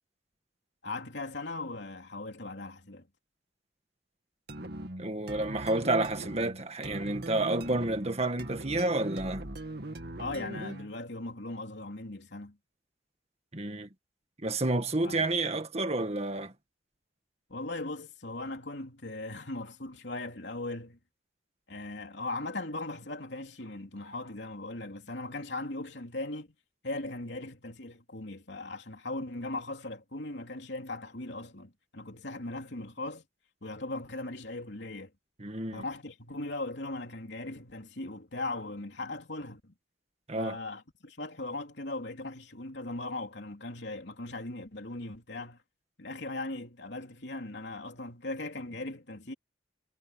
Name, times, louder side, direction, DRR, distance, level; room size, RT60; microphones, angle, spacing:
voice 1, 0.8-3.1 10.2-12.6 15.0-15.6 17.5-21.0 21.7-26.5 26.8-33.2 33.6-35.1 35.7-39.7 40.3-45.6 46.0-49.3, left 2 dB, 70° left, 3.3 m, -39 dB
sound 1, 4.5-11.0, right 1 dB, 60° right, 2.3 m, -40 dB
voice 2, 5.0-9.5 13.5-13.9 14.4-16.5 35.4-35.8 40.3-40.6, right 2 dB, 35° right, 1.8 m, -30 dB
head